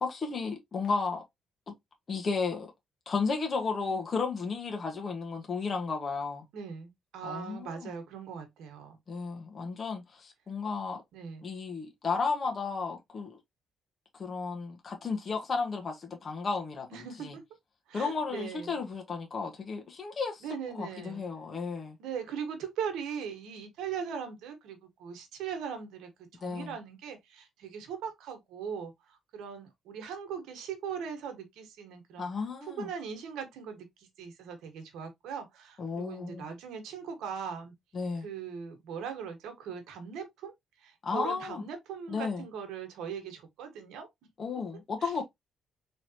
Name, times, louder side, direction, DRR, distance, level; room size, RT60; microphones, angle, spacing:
voice 1, 0.0-1.2 2.1-2.7 3.1-6.4 7.2-7.9 9.1-11.0 11.4-13.4 14.2-17.3 17.9-20.4 20.7-22.0 26.4-26.8 32.2-32.9 35.8-36.4 37.9-38.3 41.0-41.6 42.1-42.5 44.4-45.2, left 4 dB, 40° left, 1.2 m, -33 dB
voice 2, 6.5-9.0 11.1-11.5 16.9-17.4 17.9-18.8 20.4-21.3 22.0-28.9 29.3-32.3 32.7-33.9 34.2-37.7 38.2-40.5 40.8-44.5 45.0-45.1, right 7 dB, 85° right, 1.3 m, -40 dB
3.9 x 3.2 x 2.7 m
cardioid pair, 90°, 0 cm